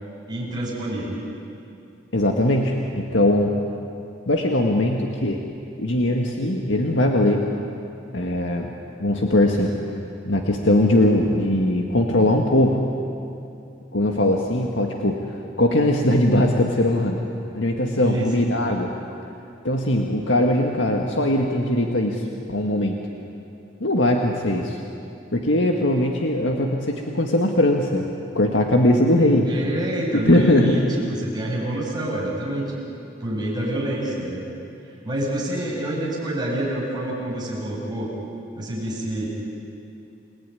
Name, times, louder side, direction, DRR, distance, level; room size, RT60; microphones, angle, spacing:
voice 1, 0.3-1.2 18.0-18.6 29.4-32.8 33.2-34.5 35.0-38.1 38.6-39.3, right 1 dB, 25° right, -4 dB, 7.6 m, -27 dB
voice 2, 2.1-3.6 4.3-5.4 5.8-7.5 8.1-8.7 9.0-9.7 10.3-12.8 13.9-15.2 15.6-17.2 17.5-18.9 19.6-23.0 23.8-24.8 25.3-28.1 28.4-29.5 30.1-30.8, left 1 dB, 85° left, 2 dB, 1.8 m, -20 dB
29.5 x 19.0 x 9.8 m, 2.7 s
head